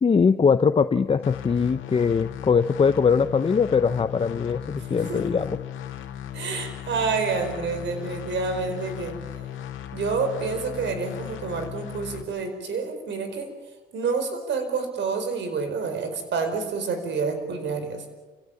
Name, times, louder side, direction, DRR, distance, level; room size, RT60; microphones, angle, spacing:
voice 1, 0.0-5.6, left 5 dB, 30° left, 11 dB, 0.7 m, -21 dB
sound 1, 1.2-12.2, left 10 dB, 80° left, 2.4 m, -37 dB
voice 2, 4.9-5.2 6.3-9.2 9.9-13.5 13.9-18.0, right 4 dB, 65° right, 8 dB, 4.8 m, -28 dB
28.5 x 17.0 x 7.1 m, 1.2 s
cardioid pair, 90°, 20 cm